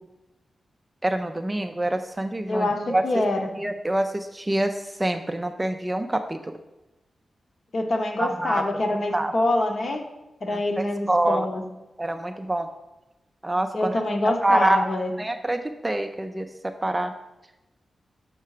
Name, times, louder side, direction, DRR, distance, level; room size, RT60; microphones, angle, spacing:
voice 1, 1.0-3.0 3.6-6.5 8.2-8.6 9.1-9.3 10.5-10.6 11.1-11.5 12.0-12.7 13.4-14.0 14.4-16.5 16.8-17.1, right 1 dB, 10° right, 6 dB, 0.3 m, -25 dB
voice 2, 2.5-3.5 7.7-10.0 10.4-11.6 13.7-15.1, left 2 dB, 45° left, 4 dB, 0.9 m, -25 dB
6.6 x 5.5 x 4.8 m, 1.0 s
wide cardioid pair, 175°, 0 cm